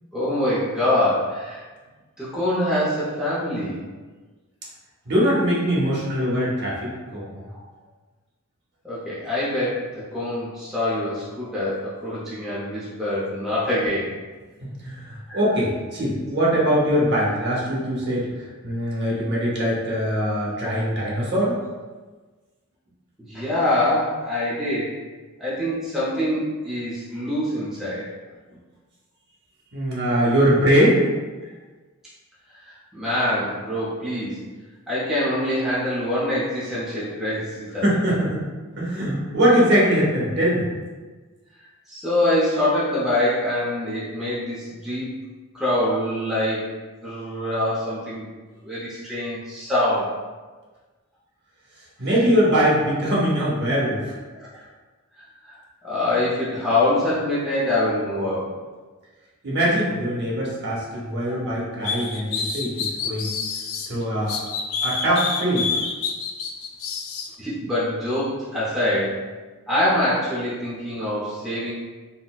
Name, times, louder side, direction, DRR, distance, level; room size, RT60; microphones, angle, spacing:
voice 1, 0.1-1.6 2.2-3.8 7.3-7.4 8.8-14.1 15.3-15.4 23.2-25.0 25.4-28.1 30.2-30.3 31.4-31.5 32.6-34.4 34.9-38.1 41.9-45.2 45.5-46.7 47.0-48.3 48.6-50.1 54.3-54.7 55.2-55.6 55.8-58.5 61.2-61.4 64.8-64.9 67.4-69.3 69.7-71.7, left 1 dB, ahead, -9 dB, 0.5 m, -25 dB
voice 2, 5.1-7.3 14.8-21.6 29.7-31.0 37.8-38.4 38.8-40.7 52.0-54.1 59.4-63.4 63.9-64.4 64.8-65.7, equal, 50° right, -5 dB, 0.8 m, -22 dB
sound 1, 61.8-63.9 64.3-67.3, left 5 dB, 65° left, 0.3 m, -27 dB
3.9 x 2.1 x 2.3 m, 1.3 s
head